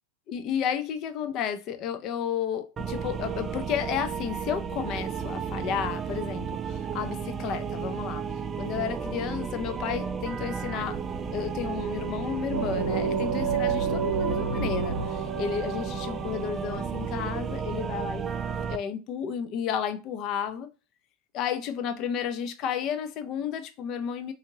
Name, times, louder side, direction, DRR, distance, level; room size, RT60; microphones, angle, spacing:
voice 1, 0.3-8.2 8.6-11.0 11.3-18.2 18.7-20.7 21.3-24.3, left 8 dB, 45° left, 0.4 m, -32 dB
sound 1, 2.8-18.8, right 6 dB, 25° right, 0.3 m, -33 dB
sound 2, 12.5-17.1, right 6 dB, 75° right, 0.7 m, -29 dB
2.8 x 2.6 x 2.7 m
hypercardioid pair, 105°, 0 cm